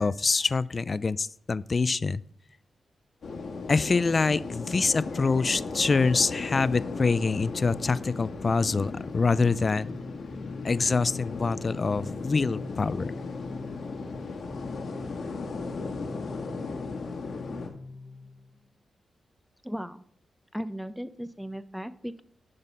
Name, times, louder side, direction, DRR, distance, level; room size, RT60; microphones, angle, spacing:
voice 1, 0.0-2.2 3.7-9.9 10.6-13.1, left 4 dB, 45° left, 19 dB, 0.3 m, -25 dB
sound 1, 3.2-17.7, left 4 dB, 75° left, 1.5 m, -36 dB
Singing, 9.8-18.7, left 3 dB, 65° right, 2.0 m, -44 dB
voice 2, 19.6-20.0 20.5-22.2, equal, 5° right, 13 dB, 0.6 m, -36 dB
11.0 x 4.0 x 5.4 m, 0.63 s
cardioid pair, 70°, 0 cm